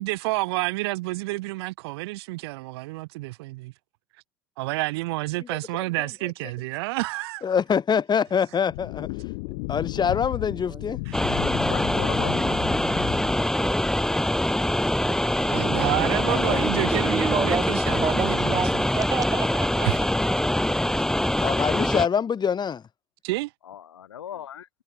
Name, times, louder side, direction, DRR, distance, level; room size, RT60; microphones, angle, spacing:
voice 1, 0.0-3.7 4.6-7.4 11.1-11.3 15.5-18.8 19.8-20.0 23.2-23.5, right 22 dB, 70° right, 1.5 m, -29 dB
voice 2, 5.7-6.1 7.4-9.1 9.7-11.0 16.3-16.7 21.4-22.8, left 7 dB, 30° left, 2.6 m, -25 dB
sound 1, 8.7-13.7, left 31 dB, 65° left, 4.6 m, -34 dB
voice 3, 10.5-11.0 13.2-13.9 14.6-17.7 18.0-20.3, right 5 dB, 25° right, 3.6 m, -32 dB
sound 2, 11.1-22.1, left 1 dB, 5° left, 1.1 m, -24 dB
voice 4, 11.5-12.7 20.6-20.7 23.6-24.7, left 10 dB, 80° left, 5.4 m, -38 dB
figure-of-eight pair, 70°, 14 cm